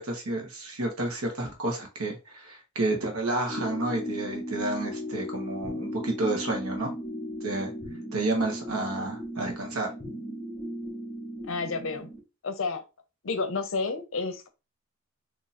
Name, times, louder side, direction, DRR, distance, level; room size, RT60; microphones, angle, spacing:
voice 1, 0.0-6.9 7.4-7.7 8.1-9.9, right 2 dB, 80° right, 1.2 m, -30 dB
sound 1, 3.5-12.2, equal, 5° right, 1.0 m, -36 dB
voice 2, 11.4-12.1 12.4-12.8 13.2-14.5, left 4 dB, 60° left, 0.6 m, -30 dB
2.8 x 2.5 x 4.1 m
head